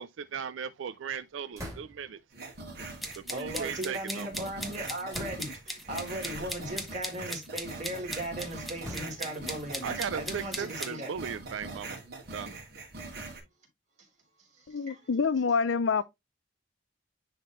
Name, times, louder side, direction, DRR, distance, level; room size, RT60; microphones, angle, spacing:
voice 1, 0.0-2.2 3.2-4.5 9.8-12.0 12.3-12.6, right 7 dB, 75° right, 0.4 m, -37 dB
sound 1, 1.5-2.2 3.1-4.2 5.1-5.8 6.6-6.8 7.3-8.0 8.8-9.5 10.3-12.2, equal, 15° right, 2.6 m, -45 dB
sound 2, 2.3-13.4, right 3 dB, 55° right, 2.8 m, -42 dB
sound 3, 3.0-10.9, equal, ahead, 1.0 m, -39 dB
voice 2, 3.3-11.1 14.5-15.0 16.0-16.1, right 1 dB, 40° right, 3.2 m, -38 dB
voice 3, 14.7-16.0, left 5 dB, 75° left, 0.5 m, -27 dB
10.0 x 3.7 x 3.0 m
head